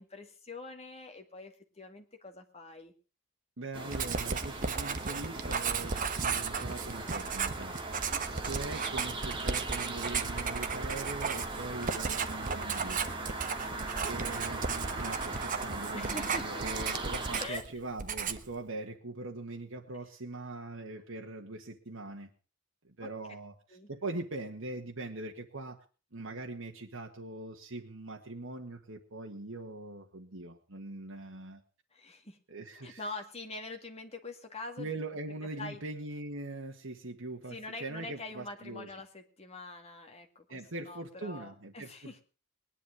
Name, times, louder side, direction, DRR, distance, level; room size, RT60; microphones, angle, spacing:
voice 1, 0.0-2.9 8.1-8.2 14.2-14.7 15.9-16.6 17.4-17.6 23.0-23.1 23.7-23.9 31.9-32.4 32.7-34.9 35.6-35.8 37.5-42.2, left 2 dB, 30° left, 4 dB, 2.2 m, -44 dB
voice 2, 3.6-7.7 8.4-13.0 14.0-22.3 22.8-25.8 26.1-31.6 32.5-33.0 34.8-38.9 40.5-42.2, right 2 dB, 65° right, 1 dB, 1.6 m, -42 dB
sound 1, 3.7-17.5, right 3 dB, 25° right, 2.2 m, -39 dB
Writing, 3.9-17.7 18.0-18.5, right 5 dB, 40° right, 1.1 m, -35 dB
20.0 x 11.0 x 4.8 m, 0.36 s
head